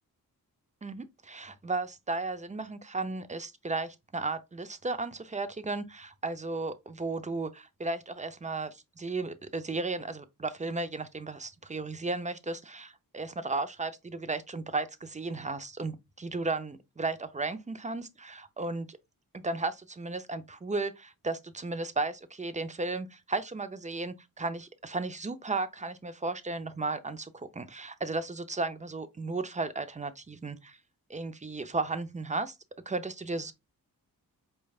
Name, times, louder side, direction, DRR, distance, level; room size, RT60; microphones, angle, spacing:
voice 1, 0.8-19.0 19.3-30.8 31.1-32.5 32.9-33.5, right 3 dB, 20° right, 0.5 m, -34 dB
4.6 x 3.3 x 2.3 m
cardioid pair, 80°, 37 cm